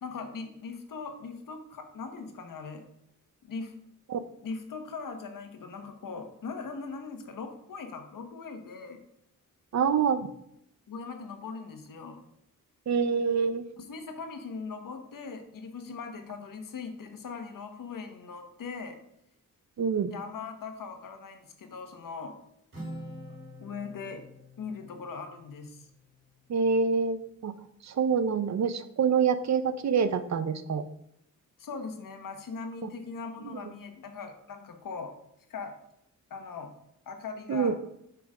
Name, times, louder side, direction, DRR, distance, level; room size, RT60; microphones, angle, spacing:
voice 1, 0.0-2.8 3.4-3.7 4.4-9.0 10.9-12.2 13.8-19.0 20.1-22.3 23.3-24.3 24.6-25.9 31.6-35.1 35.5-35.7 36.3-36.7 37.1-37.8, left 4 dB, 85° left, 6 dB, 1.3 m, -40 dB
voice 2, 9.7-10.3 12.9-13.6 19.8-20.1 26.5-27.5 27.8-30.8 32.8-32.9 33.5-33.6 37.5-37.7, right 6 dB, 60° right, 13 dB, 0.6 m, -26 dB
Acoustic guitar, 22.7-26.4, equal, 40° right, 3.8 m, -46 dB
7.9 x 6.1 x 5.0 m, 0.76 s
wide cardioid pair, 170°, 32 cm